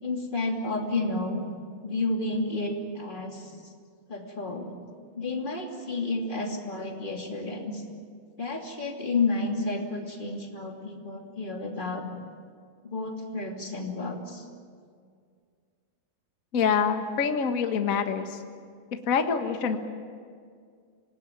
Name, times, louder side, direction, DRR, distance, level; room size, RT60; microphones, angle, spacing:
voice 1, 0.0-1.4 1.8-3.5 4.1-4.7 5.1-7.8 8.4-12.0 12.8-14.5, left 3 dB, 15° left, 1 dB, 2.3 m, -31 dB
voice 2, 16.5-18.4 19.1-19.8, left 6 dB, 65° left, 5 dB, 0.8 m, -25 dB
26.5 x 19.0 x 9.1 m, 2.1 s
omnidirectional pair, 4.1 m